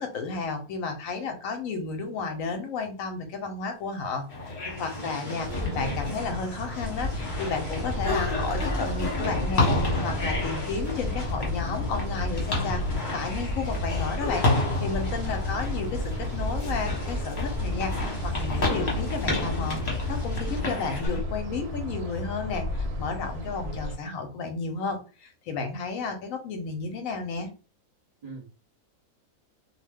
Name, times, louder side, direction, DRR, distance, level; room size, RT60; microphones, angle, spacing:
voice 1, 0.0-27.5, left 4 dB, 70° left, 6 dB, 1.0 m, -33 dB
sound 1, 4.1-21.1, left 2 dB, 25° left, 1.1 m, -33 dB
sound 2, 4.3-21.2, left 2 dB, 45° left, 1.0 m, -31 dB
voice 2, 4.9-5.7 23.6-23.8 28.2-28.5, right 3 dB, 60° right, -2 dB, 0.4 m, -43 dB
sound 3, 5.5-24.0, equal, 85° right, 1.2 m, -36 dB
2.6 x 2.1 x 3.3 m, 0.35 s
omnidirectional pair, 1.5 m